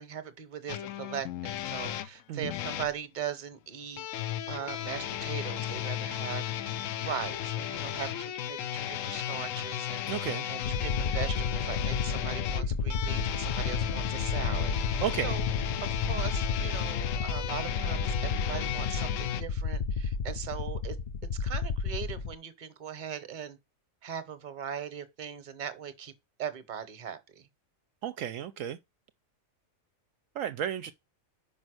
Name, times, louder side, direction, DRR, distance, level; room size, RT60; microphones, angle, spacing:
voice 1, 0.0-4.0 4.5-6.5 7.0-15.5 15.8-21.0 21.4-23.6 24.0-26.1 26.4-27.5, right 8 dB, 40° right, 1.0 m, -39 dB
sound 1, 0.7-2.9 4.0-19.4, left 11 dB, 75° left, 1.0 m, -35 dB
voice 2, 10.1-10.5 15.0-15.3 28.0-28.8 30.3-30.9, right 10 dB, 75° right, 0.9 m, -33 dB
sound 2, 10.6-22.3, left 5 dB, 55° left, 0.5 m, -32 dB
5.4 x 5.3 x 6.2 m
omnidirectional pair, 1.4 m